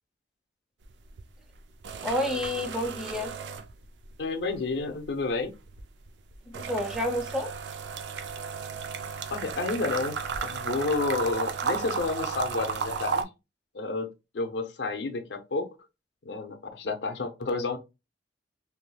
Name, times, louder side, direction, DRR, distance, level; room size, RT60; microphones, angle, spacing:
sound 1, 0.8-1.2 1.5-4.2 4.5-13.2, right 5 dB, 75° right, 0.4 m, -34 dB
voice 1, 2.0-3.3 6.5-7.5, left 1 dB, 5° right, 0.5 m, -29 dB
voice 2, 4.2-5.5 9.3-13.3 13.7-14.1 14.3-15.8 16.2-17.8, left 3 dB, 70° left, 0.6 m, -30 dB
3.2 x 3.0 x 2.2 m
head